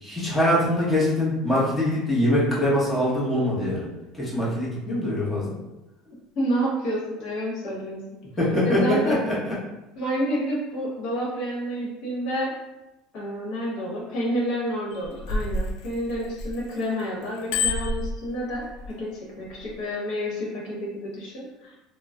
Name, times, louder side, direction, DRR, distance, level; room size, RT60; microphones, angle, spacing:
voice 1, 0.0-3.9 4.1-5.5 8.4-9.5, left 1 dB, 10° left, -8 dB, 0.9 m, -23 dB
voice 2, 6.3-8.0 8.6-9.2 10.0-12.5 13.1-21.8, equal, 55° left, -4 dB, 1.1 m, -29 dB
Bicycle bell, 14.9-16.8 17.2-18.9 19.5-19.7, left 3 dB, 75° left, 0.3 m, -28 dB
2.3 x 2.0 x 3.5 m, 1.0 s
cardioid pair, 150°, 0 cm